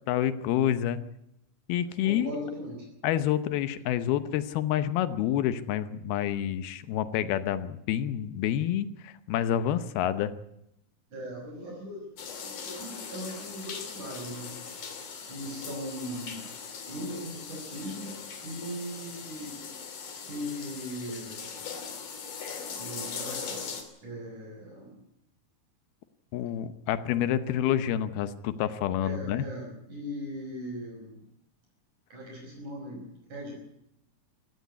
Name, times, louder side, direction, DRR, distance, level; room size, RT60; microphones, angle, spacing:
voice 1, 0.1-1.0 1.7-2.3 3.0-10.3 26.3-29.5, left 11 dB, 85° left, 13 dB, 2.9 m, -28 dB
voice 2, 2.0-2.9 11.1-14.5 15.2-16.5 16.8-19.7 20.2-21.6 22.8-23.7 24.0-25.0 29.0-31.2 32.1-33.0 33.3-33.6, equal, 55° right, 0 dB, 7.1 m, -39 dB
sound 1, 12.2-23.8, left 6 dB, 60° left, 4.2 m, -40 dB
16.5 x 16.5 x 9.7 m, 0.81 s
omnidirectional pair, 4.3 m